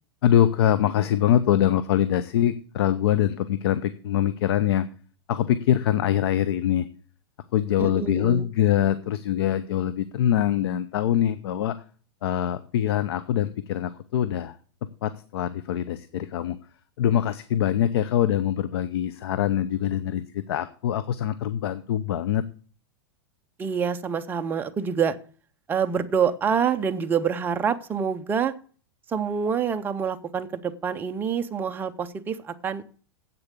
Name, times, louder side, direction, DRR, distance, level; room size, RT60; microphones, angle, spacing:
voice 1, 0.2-4.9 5.3-6.9 7.5-11.8 12.2-14.6 15.0-16.6 17.0-22.4, left 11 dB, 70° left, 14 dB, 0.7 m, -23 dB
voice 2, 7.8-8.5 23.6-25.2 25.7-28.5 29.1-32.8, right 7 dB, 15° right, 8 dB, 0.6 m, -26 dB
8.3 x 6.8 x 8.2 m, 0.42 s
supercardioid pair, 150°, 14 cm